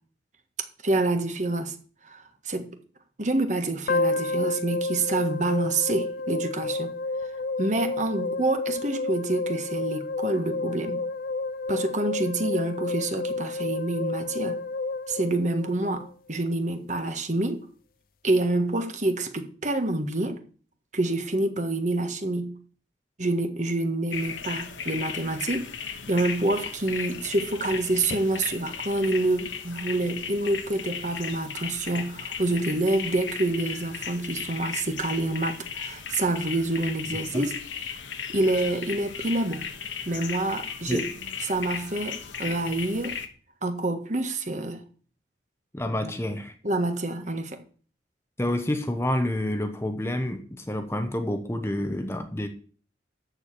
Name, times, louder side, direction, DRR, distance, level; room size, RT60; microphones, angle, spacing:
voice 1, 0.8-1.7 2.0-2.2 2.4-2.7 3.2-6.9 7.6-11.0 11.7-14.6 15.1-17.6 18.2-20.4 20.9-22.6 23.2-25.7 26.1-37.5 38.3-39.7 40.0-41.1 41.4-43.2 43.6-44.8 46.0-46.1 46.6-47.6, right 2 dB, 40° right, 1.6 m, -27 dB
sound 1, 3.9-16.1, left 3 dB, 50° left, 0.5 m, -30 dB
sound 2, 24.1-43.3, left 7 dB, 90° left, 1.4 m, -36 dB
voice 2, 45.7-46.6 48.4-52.5, left 1 dB, 15° left, 1.0 m, -28 dB
13.5 x 4.9 x 8.5 m
head